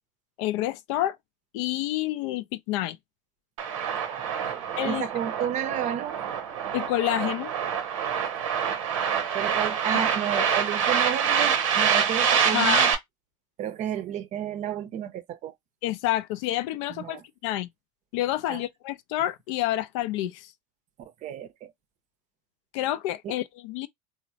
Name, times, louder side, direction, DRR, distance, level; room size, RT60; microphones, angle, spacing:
voice 1, 0.4-1.2 1.5-3.0 4.8-5.1 6.7-7.5 10.4-10.6 12.5-12.9 15.8-17.7 18.1-20.5 22.7-23.9, left 14 dB, 70° left, 0.4 m, -28 dB
sound 1, 3.6-12.9, right 7 dB, 90° right, 0.7 m, -26 dB
voice 2, 3.9-6.2 9.3-12.9 13.6-15.5 16.9-17.2 18.5-18.6 21.2-21.7 23.2-23.3, right 9 dB, 45° right, 0.5 m, -32 dB
3.0 x 2.0 x 2.6 m
hypercardioid pair, 90°, 17 cm